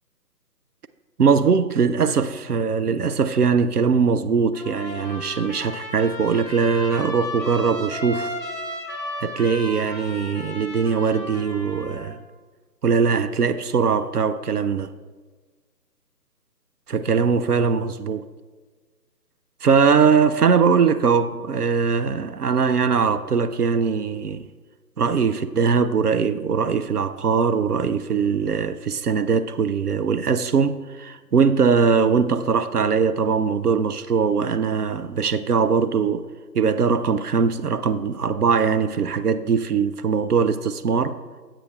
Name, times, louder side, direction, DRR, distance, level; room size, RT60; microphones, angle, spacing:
voice 1, 1.2-8.3 9.2-12.2 12.8-14.9 16.9-18.2 19.6-24.5 25.0-36.2 36.5-41.1, right 5 dB, 65° right, 0.6 m, -21 dB
Trumpet, 4.5-12.1, left 1 dB, 10° left, 1.4 m, -34 dB
16.0 x 7.7 x 2.3 m
figure-of-eight pair, 155°, 50 cm